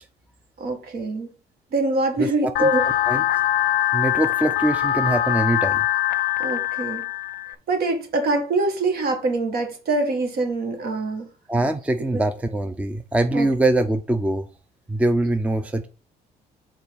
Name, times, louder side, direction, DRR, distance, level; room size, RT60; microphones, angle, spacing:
voice 1, 0.6-1.3 1.7-2.8 6.4-7.0 7.7-11.3 12.1-12.2 13.3-13.5, right 2 dB, 65° right, 1.8 m, -24 dB
voice 2, 2.2-2.7 3.1-3.2 3.9-5.8 11.5-14.5 14.9-15.9, right 2 dB, 10° right, 0.5 m, -23 dB
sound 1, 2.6-7.6, left 12 dB, 65° left, 0.5 m, -23 dB
5.6 x 3.9 x 4.9 m
cardioid pair, 110°, 17 cm